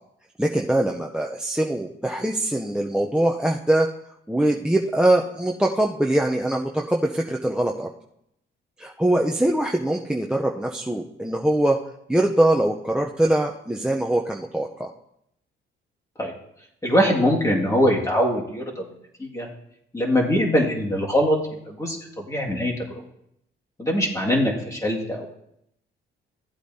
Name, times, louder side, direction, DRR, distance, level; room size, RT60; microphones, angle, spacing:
voice 1, 0.4-3.9 4.3-7.9 8.8-11.8 12.1-14.9, right 1 dB, 5° right, 3 dB, 0.6 m, -22 dB
voice 2, 16.8-18.8 19.2-19.5 19.9-21.4 21.7-22.7 23.8-25.3, equal, 15° left, -1 dB, 2.0 m, -22 dB
15.0 x 8.1 x 2.7 m, 0.77 s
cardioid pair, 90°, 20 cm